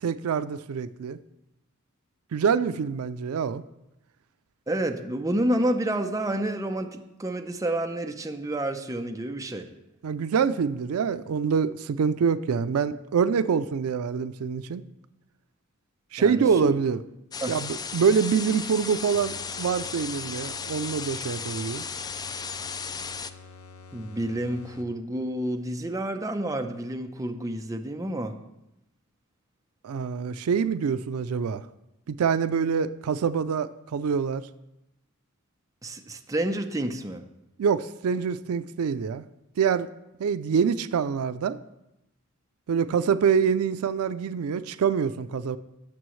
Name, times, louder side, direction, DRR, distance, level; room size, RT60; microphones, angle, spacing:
voice 1, 0.0-1.2 2.3-3.6 10.0-14.8 16.1-17.0 17.5-21.8 29.8-31.6 32.1-34.5 37.6-39.2 39.6-39.9 40.2-41.6 42.7-45.6, right 6 dB, 85° right, 13 dB, 0.4 m, -25 dB
voice 2, 4.7-9.7 16.2-16.7 17.4-17.6 23.9-28.3 35.8-37.2, right 1 dB, 15° right, 4 dB, 0.7 m, -29 dB
sound 1, 17.3-23.3, left 5 dB, 20° left, 0.3 m, -35 dB
sound 2, 19.1-25.2, left 4 dB, 80° left, 0.7 m, -48 dB
17.5 x 6.8 x 3.1 m, 0.90 s
head